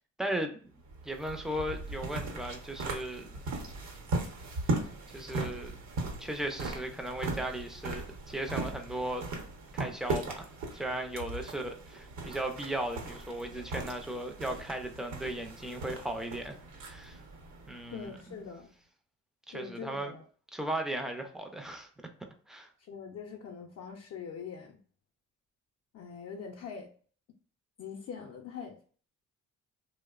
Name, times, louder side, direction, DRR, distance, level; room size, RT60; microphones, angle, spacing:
voice 1, 0.2-0.7 1.0-3.4 5.1-5.8 6.2-9.3 9.7-17.2 17.7-18.2 19.5-20.1 20.5-21.9 22.5-22.7, right 1 dB, ahead, 0.4 m, -36 dB
sound 1, 0.8-18.5, right 2 dB, 70° right, 0.8 m, -38 dB
voice 2, 17.9-18.7 19.5-20.2 22.9-24.8 25.9-26.9 27.8-28.8, left 6 dB, 55° left, 0.5 m, -43 dB
2.8 x 2.0 x 2.3 m
cardioid pair, 90°, 30 cm